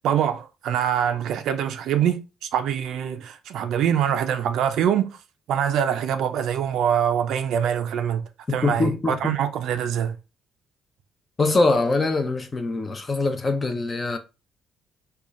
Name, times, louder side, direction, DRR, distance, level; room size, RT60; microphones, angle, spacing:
voice 1, 0.0-5.2 5.5-10.1, right 9 dB, 70° right, 0.4 m, -24 dB
voice 2, 8.5-9.4 11.4-14.2, left 3 dB, 20° left, 0.6 m, -23 dB
3.8 x 2.3 x 3.0 m
cardioid pair, 160°, 0 cm